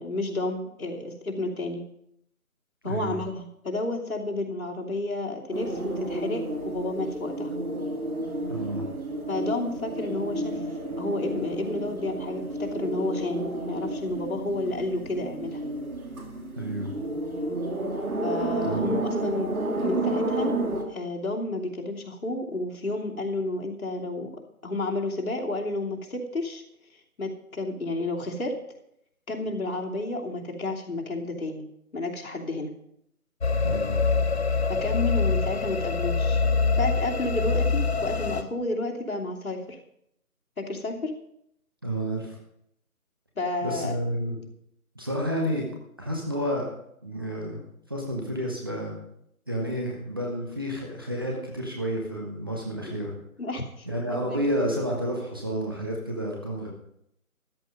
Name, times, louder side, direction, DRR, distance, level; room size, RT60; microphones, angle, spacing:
voice 1, 0.0-1.9 2.8-7.5 9.3-10.6 11.0-15.6 18.2-19.5 19.8-20.6 20.9-24.3 24.6-26.6 26.9-28.5 29.3-31.6 31.9-32.7 34.7-36.4 36.7-39.8 40.6-41.1 43.3-43.9 52.8-53.0 53.4-54.4, left 2 dB, 65° left, -1 dB, 3.0 m, -31 dB
voice 2, 2.8-3.2 8.5-8.8 16.6-16.9 18.6-18.9 33.6-34.0 41.8-42.4 43.6-44.4 44.9-45.7 46.0-46.7 47.0-47.6 47.9-49.0 49.5-53.1 53.9-56.7, equal, 15° right, -1 dB, 1.0 m, -30 dB
sound 1, 5.5-20.8, right 1 dB, 70° right, 2.6 m, -31 dB
sound 2, 33.4-38.4, left 4 dB, 45° left, 0.9 m, -25 dB
13.5 x 9.4 x 5.3 m, 0.76 s
figure-of-eight pair, 160°, 44 cm